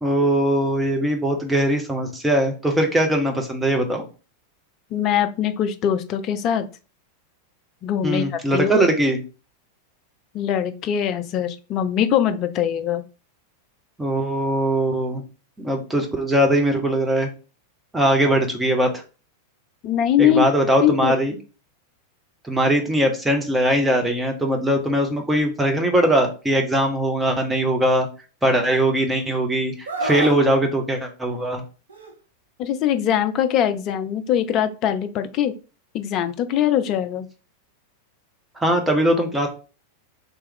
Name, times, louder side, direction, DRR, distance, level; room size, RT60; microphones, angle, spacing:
voice 1, 0.0-4.0 8.0-9.2 14.0-15.2 15.6-17.3 17.9-19.0 20.2-21.4 22.4-28.1 28.4-31.6 38.6-39.5, right 1 dB, 5° right, 3 dB, 0.9 m, -21 dB
voice 2, 4.9-6.6 7.8-8.2 8.5-8.9 10.3-13.0 19.8-20.4 20.8-21.1 32.6-35.5 35.9-37.3, left 10 dB, 35° left, 9 dB, 0.4 m, -22 dB
Screaming, 29.9-30.4 31.9-32.1, right 2 dB, 70° right, 0.7 m, -27 dB
3.3 x 3.0 x 3.6 m, 0.34 s
figure-of-eight pair, 90°, 0 cm